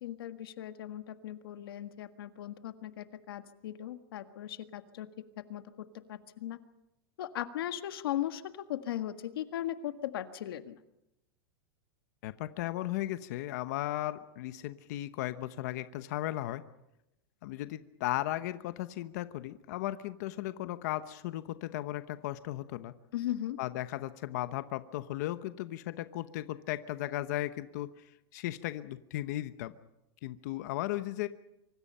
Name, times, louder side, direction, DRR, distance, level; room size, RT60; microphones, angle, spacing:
voice 1, 0.0-5.1 5.5-5.6 6.1-6.6 7.2-8.4 8.7-10.8 23.1-23.6, left 12 dB, 70° left, 9 dB, 1.7 m, -37 dB
voice 2, 12.2-16.6 17.4-22.9 23.6-27.9 28.3-29.7 30.2-31.3, left 15 dB, 45° left, 12 dB, 1.0 m, -36 dB
25.0 x 24.5 x 5.6 m, 0.88 s
supercardioid pair, 175°, 13 cm